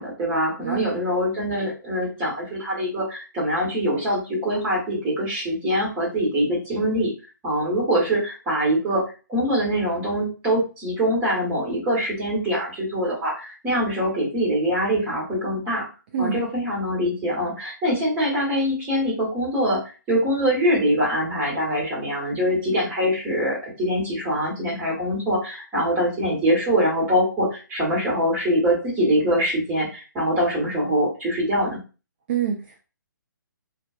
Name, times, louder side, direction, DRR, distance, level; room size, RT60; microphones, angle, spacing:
voice 1, 0.0-7.1 7.4-15.9 16.2-19.8 20.1-31.8, equal, 15° right, -5 dB, 1.2 m, -23 dB
voice 2, 0.6-1.0 16.1-16.4 32.3-32.8, right 8 dB, 30° right, 2 dB, 0.3 m, -26 dB
2.4 x 2.2 x 2.4 m, 0.33 s
figure-of-eight pair, 135°, 11 cm